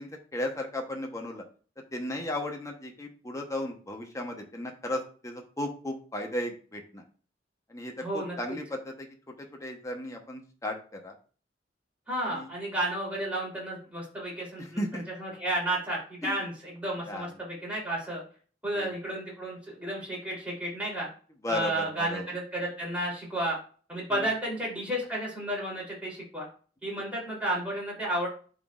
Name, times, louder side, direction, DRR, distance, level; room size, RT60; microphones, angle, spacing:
voice 1, 0.0-1.4 1.9-7.0 7.7-9.1 9.5-11.1 12.2-12.5 14.6-15.0 16.2-16.4 17.1-17.3 18.7-18.9 21.4-22.2 24.1-24.2, left 1 dB, 15° left, 2 dB, 0.9 m, -35 dB
voice 2, 8.0-8.4 12.1-14.8 15.2-18.2 18.6-21.1 21.5-23.6 23.9-26.4 26.8-28.3, right 1 dB, 5° right, -5 dB, 3.2 m, -32 dB
11.5 x 4.0 x 2.4 m, 0.40 s
head